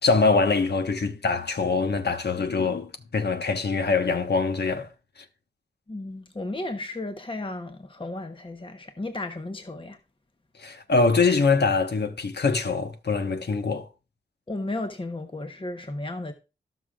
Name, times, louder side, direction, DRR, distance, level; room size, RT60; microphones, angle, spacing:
voice 1, 0.0-4.9 10.6-13.9, left 4 dB, 65° left, 1.3 m, -23 dB
voice 2, 5.9-10.0 14.5-16.3, left 2 dB, 30° left, 1.0 m, -34 dB
18.0 x 6.1 x 2.4 m
cardioid pair, 50°, 18 cm